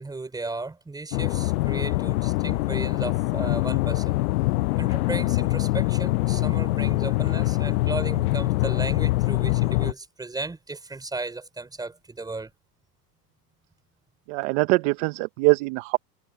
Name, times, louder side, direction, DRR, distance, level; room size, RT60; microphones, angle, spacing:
voice 1, 0.0-4.2 4.8-12.5, right 3 dB, 10° right, 4.3 m, -35 dB
sound 1, 1.1-9.9, left 19 dB, 60° left, 0.7 m, -24 dB
voice 2, 14.3-16.0, right 24 dB, 45° right, 0.9 m, -23 dB
supercardioid pair, 140°, 49 cm